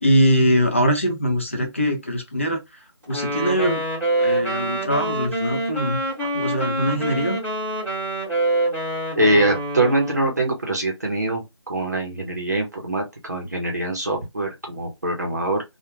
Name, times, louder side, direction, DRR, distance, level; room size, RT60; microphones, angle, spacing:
voice 1, 0.0-2.6 3.1-3.8 4.2-7.4, equal, 25° left, 0.5 m, -22 dB
Wind instrument woodwind instrument, 3.1-10.3, right 1 dB, 5° right, 0.7 m, -25 dB
voice 2, 9.2-15.6, right 1 dB, 40° right, 0.6 m, -23 dB
2.2 x 2.1 x 3.0 m
figure-of-eight pair, 175°, 15 cm